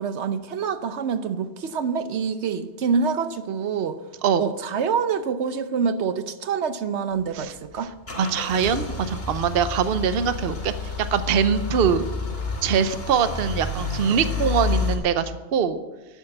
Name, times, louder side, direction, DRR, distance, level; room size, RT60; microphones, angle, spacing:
voice 1, 0.0-4.0 4.4-7.9, right 6 dB, 80° right, 1.1 m, -26 dB
Car / Engine starting / Idling, 7.1-14.9, left 4 dB, 60° left, 2.7 m, -30 dB
voice 2, 8.2-10.7 11.1-12.1 12.6-15.8, right 7 dB, 60° right, 0.9 m, -23 dB
12.0 x 10.0 x 7.8 m
omnidirectional pair, 1.1 m